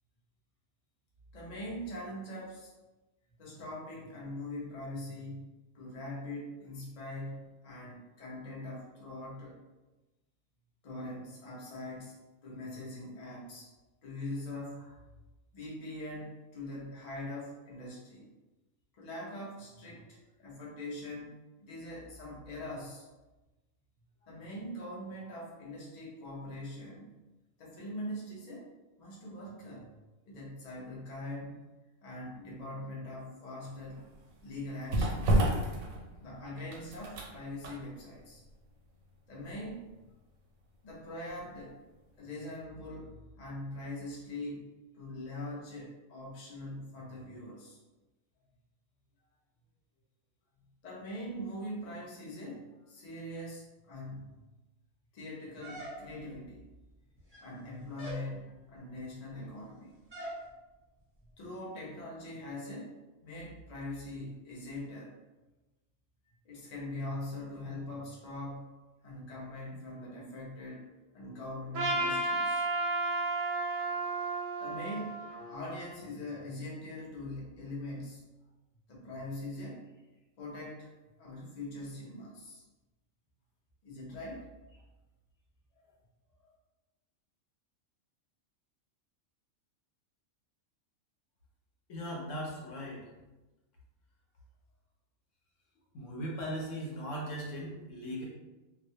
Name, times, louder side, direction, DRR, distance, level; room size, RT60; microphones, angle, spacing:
voice 1, 1.3-2.7 3.4-9.6 10.8-12.1 12.4-13.7 14.0-15.0 15.5-18.3 19.0-23.1 24.2-27.1 27.6-28.7 29.0-29.9 30.3-31.6 32.0-34.1 34.4-35.4 36.2-38.4 39.3-39.8 40.8-41.8 42.2-47.8 50.8-54.4 55.1-56.7 57.4-59.9 61.4-62.9 63.2-65.1 66.4-68.7 69.0-70.9 71.1-73.0 73.8-73.9 74.6-75.2 75.5-78.2 78.9-79.8 80.4-80.9 81.2-82.6 83.8-84.8, left 1 dB, 45° left, -5 dB, 0.6 m, -42 dB
sound 1, 33.7-41.6 41.9-42.1, right 1 dB, 90° right, 1.0 m, -34 dB
sound 2, 55.6-56.4 57.2-57.6 58.0-58.3 60.1-60.4, equal, 10° right, 0.7 m, -43 dB
Trumpet, 71.7-76.0, right 2 dB, 65° right, 0.8 m, -33 dB
voice 2, 91.9-93.0 95.9-98.2, equal, 70° left, -3 dB, 1.0 m, -38 dB
2.4 x 2.1 x 2.7 m, 1.1 s
omnidirectional pair, 1.4 m